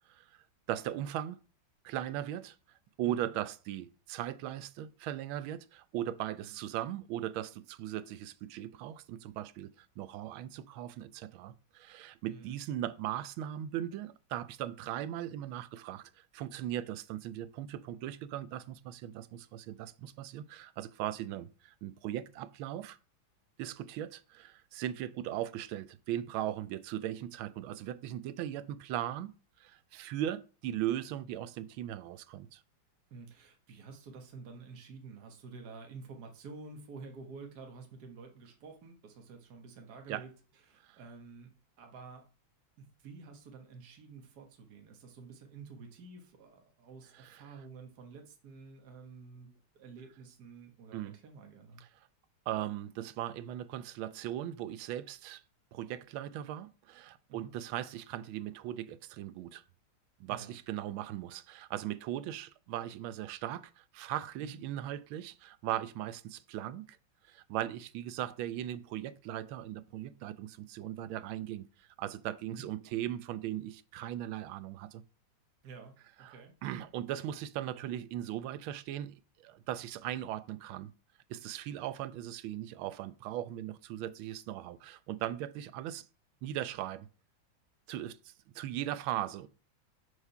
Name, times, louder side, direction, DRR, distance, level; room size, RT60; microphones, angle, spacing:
voice 1, 0.1-1.4 1.8-2.6 3.0-23.0 23.6-29.3 29.6-32.6 40.1-40.2 40.8-41.0 47.1-47.4 50.9-51.2 51.8-51.9 52.5-55.4 55.7-59.6 60.2-67.0 67.3-75.0 76.2-80.9 81.3-86.0 86.4-87.1 87.9-89.5, right 12 dB, 85° right, 1.4 m, -38 dB
voice 2, 12.3-12.6 21.2-21.4 33.1-40.3 40.7-41.5 41.8-42.2 42.8-51.8 57.3-57.5 60.3-60.6 64.4-64.6 72.5-72.7 75.6-76.6, right 4 dB, 55° right, 1.7 m, -50 dB
4.9 x 4.8 x 5.6 m
omnidirectional pair, 2.2 m